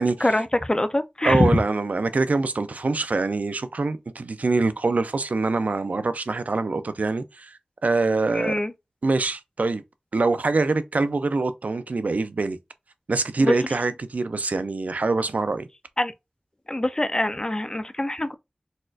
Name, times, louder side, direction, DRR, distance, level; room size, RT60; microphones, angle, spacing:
voice 1, 0.2-1.5 8.3-8.7 13.4-13.5 16.0-16.1 16.7-18.3, left 1 dB, 30° left, 0.4 m, -24 dB
voice 2, 1.2-8.5 9.0-9.8 10.1-12.6 13.1-15.7, right 3 dB, 70° right, 0.4 m, -24 dB
4.1 x 2.4 x 2.4 m
wide cardioid pair, 45°, 3 cm